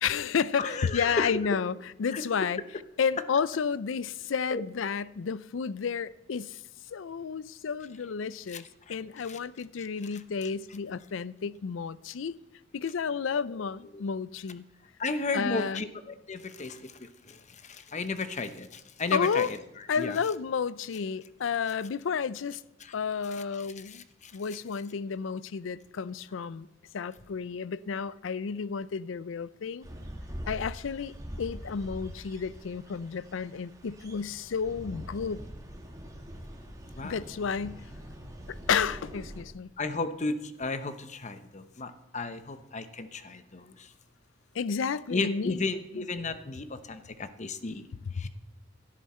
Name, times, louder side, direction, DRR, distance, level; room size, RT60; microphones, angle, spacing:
voice 1, 0.0-2.6 3.0-6.6 6.9-12.3 12.7-14.6 15.3-15.8 19.1-19.5 19.9-22.6 22.9-24.0 24.3-26.7 26.9-29.9 30.5-35.4 37.0-37.8 38.5-39.7 44.5-45.6 45.9-46.0 48.0-48.3, left 6 dB, 75° left, 0.4 m, -31 dB
voice 2, 0.6-1.3 2.1-2.2 4.5-4.6 8.5-8.9 9.2-9.4 9.8-9.9 13.3-13.6 13.9-14.0 15.0-19.6 20.0-20.2 22.8-22.9 23.3-23.4 23.8-24.3 37.0-37.2 39.8-43.9 45.1-47.9 48.1-48.3, left 3 dB, 40° left, 0.9 m, -34 dB
sound 1, 29.8-39.4, equal, 20° right, 1.7 m, -43 dB
16.5 x 11.5 x 4.3 m
head